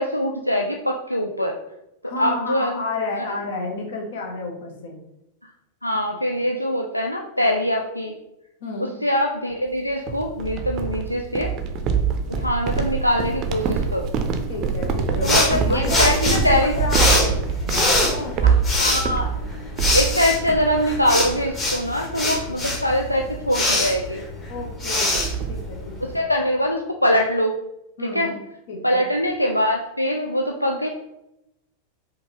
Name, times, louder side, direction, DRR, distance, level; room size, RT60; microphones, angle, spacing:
voice 1, 0.0-1.6 2.0-2.8 3.2-3.4 5.8-8.1 8.8-11.5 12.3-14.1 15.2-16.7 18.4-19.3 19.9-24.2 26.0-27.6 28.0-28.3 28.8-30.9, left 1 dB, 85° left, 2 dB, 0.3 m, -23 dB
voice 2, 2.0-5.0 6.1-6.2 8.6-9.0 14.5-17.3 17.6-18.4 22.3-22.6 24.5-26.1 28.0-28.3 28.7-29.1, left 2 dB, 55° left, 2 dB, 1.0 m, -31 dB
sound 1, 10.1-20.9 21.2-21.7 22.0-22.3 22.7-22.9 24.0-24.1 24.3-24.4 24.7-25.7, right 6 dB, 35° right, 0.5 m, -25 dB
sound 2, 15.2-26.2, left 2 dB, 25° left, 1.4 m, -24 dB
4.9 x 2.8 x 3.1 m, 0.88 s
figure-of-eight pair, 90°, 0 cm